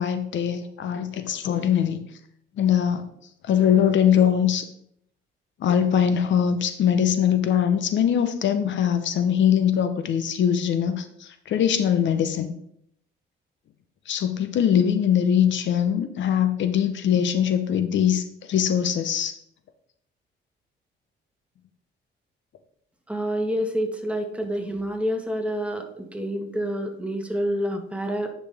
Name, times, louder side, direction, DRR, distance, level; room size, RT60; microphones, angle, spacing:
voice 1, 0.0-2.1 2.6-3.1 3.4-4.6 5.6-12.5 14.1-19.3, left 9 dB, 70° left, 9 dB, 0.8 m, -22 dB
voice 2, 23.1-28.3, equal, 5° right, 4 dB, 1.4 m, -28 dB
9.6 x 5.5 x 3.5 m, 0.71 s
cardioid pair, 90°, 20 cm